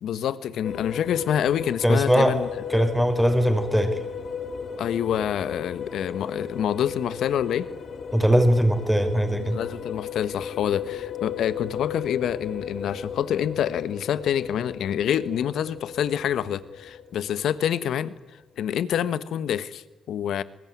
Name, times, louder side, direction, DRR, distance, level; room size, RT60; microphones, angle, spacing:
voice 1, 0.0-2.5 4.8-7.7 9.5-18.1 18.6-20.4, left 9 dB, 70° left, 15 dB, 1.3 m, -27 dB
sound 1, 0.6-17.9, left 7 dB, 55° left, 2.2 m, -36 dB
voice 2, 1.8-2.4 2.7-4.0 8.1-9.6, equal, 5° right, 7 dB, 4.9 m, -20 dB
27.0 x 21.0 x 9.4 m, 1.1 s
supercardioid pair, 55°, 0 cm